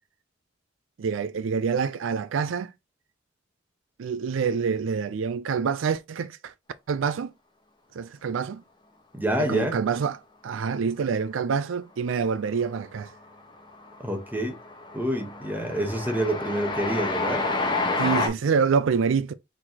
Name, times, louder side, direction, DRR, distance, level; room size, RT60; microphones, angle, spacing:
voice 1, 1.0-2.7 4.0-6.5 6.9-7.3 8.0-8.6 9.4-10.2 10.4-13.1 18.0-19.3, right 6 dB, 80° right, 0.4 m, -26 dB
voice 2, 9.1-9.8 14.0-14.6 14.9-17.5, right 1 dB, 10° right, 1.0 m, -27 dB
Train, 12.6-13.1 13.4-18.3, left 3 dB, 25° left, 1.0 m, -29 dB
4.6 x 3.9 x 2.8 m
head